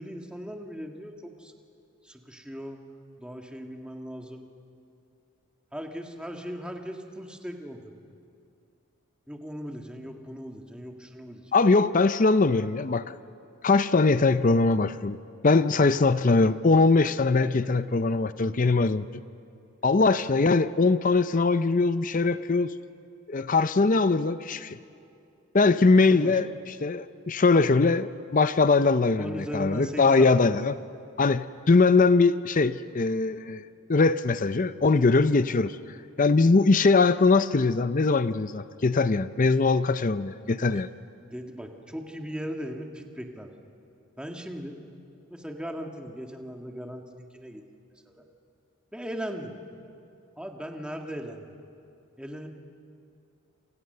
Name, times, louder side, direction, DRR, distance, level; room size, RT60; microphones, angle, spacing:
voice 1, 0.0-1.5 2.0-2.8 3.2-4.5 5.7-7.9 9.3-11.5 17.4-17.5 26.1-26.4 29.2-30.6 40.5-40.6 41.2-43.5 44.2-44.8 45.3-47.6 48.1-48.2 48.9-49.5 50.4-51.6 52.2-52.5, equal, 5° right, 2 dB, 1.8 m, -38 dB
voice 2, 11.5-13.1 13.6-15.2 15.4-19.0 19.8-22.7 23.3-24.8 25.5-26.5 26.8-30.7 31.2-33.6 33.9-35.8 36.2-40.9, left 3 dB, 40° left, 13 dB, 0.5 m, -21 dB
29.0 x 28.0 x 6.7 m, 2.6 s
head